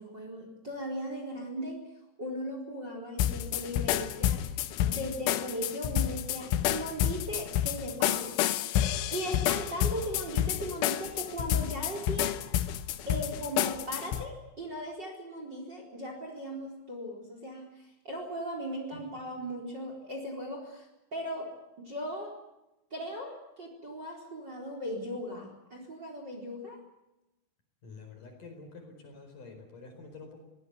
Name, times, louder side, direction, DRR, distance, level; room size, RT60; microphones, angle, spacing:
voice 1, 0.0-1.8 2.2-8.6 9.1-12.4 13.1-21.5 21.8-22.3 22.9-26.8, equal, 25° right, 2 dB, 4.4 m, -38 dB
sound 1, 3.2-14.2, left 12 dB, 80° left, 3.5 m, -29 dB
voice 2, 27.8-30.4, left 4 dB, 45° left, 4 dB, 5.8 m, -48 dB
23.0 x 18.0 x 9.6 m, 0.94 s
omnidirectional pair, 5.6 m